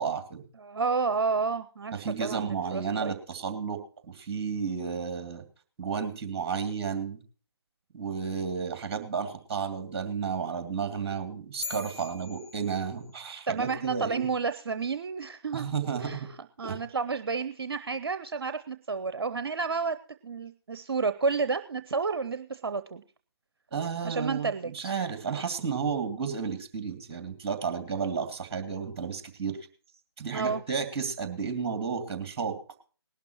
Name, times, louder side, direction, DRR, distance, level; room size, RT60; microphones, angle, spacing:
voice 1, 0.0-0.4 1.9-5.4 5.8-7.2 7.9-14.3 15.5-16.3 16.6-16.8 23.7-29.6 30.2-32.6, right 6 dB, 25° right, 7 dB, 2.3 m, -32 dB
voice 2, 0.6-3.1 13.5-15.7 16.0-16.2 16.6-20.0 20.2-23.0 24.0-24.9 30.3-30.6, right 4 dB, 60° right, 11 dB, 0.7 m, -30 dB
sound 1, 11.6-13.3, left 3 dB, 40° left, 4.3 m, -42 dB
19.5 x 12.0 x 3.0 m, 0.39 s
figure-of-eight pair, 145°, 14 cm